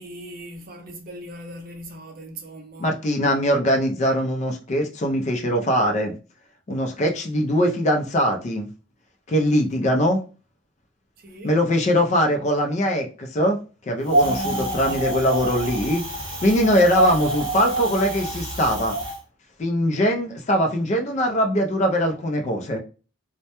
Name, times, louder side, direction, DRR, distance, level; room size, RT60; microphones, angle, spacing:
voice 1, 0.0-3.0 9.7-9.8 11.2-11.6 14.2-15.1 15.5-15.7 16.4-16.6 17.0-17.1, equal, 45° right, 0.5 m, -37 dB
voice 2, 2.8-6.1 6.7-8.7 9.3-10.2 11.4-13.6 13.9-16.0 16.4-19.0 19.6-22.8, equal, 35° left, 0.4 m, -21 dB
Wind, 14.1-19.2, right 2 dB, 25° right, 0.8 m, -26 dB
2.1 x 2.1 x 2.8 m
head